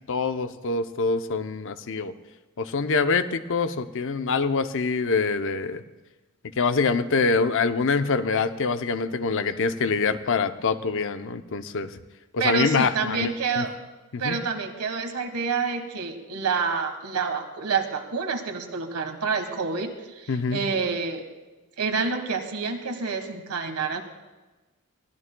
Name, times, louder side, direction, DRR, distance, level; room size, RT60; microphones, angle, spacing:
voice 1, 0.1-2.1 2.6-5.8 6.6-12.0 12.3-13.7 14.1-14.4 20.3-20.6, left 4 dB, 60° left, 10 dB, 0.7 m, -25 dB
voice 2, 12.4-13.7 14.2-21.2 21.8-24.0, right 5 dB, 80° right, 6 dB, 1.5 m, -28 dB
22.0 x 16.0 x 2.3 m, 1.2 s
head